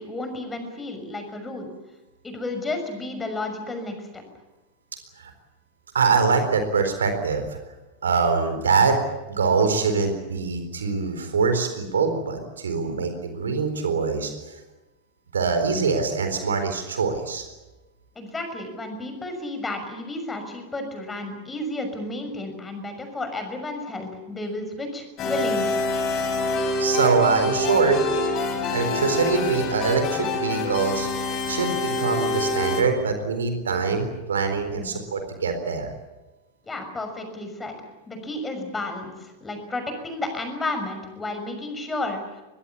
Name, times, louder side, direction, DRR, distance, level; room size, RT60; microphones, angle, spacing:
voice 1, 0.0-1.7 2.2-4.2 18.1-25.8 34.7-35.0 36.6-37.7 38.1-42.2, left 2 dB, 15° left, 6 dB, 6.2 m, -32 dB
voice 2, 5.9-7.6 8.0-9.0 9.3-14.6 15.3-17.4 26.8-28.2 28.7-31.1 31.5-35.9, right 5 dB, 70° right, 7 dB, 4.0 m, -23 dB
sound 1, 25.2-32.8, left 2 dB, 35° left, 5.0 m, -26 dB
24.0 x 21.5 x 8.4 m, 1.1 s
figure-of-eight pair, 90°, 0 cm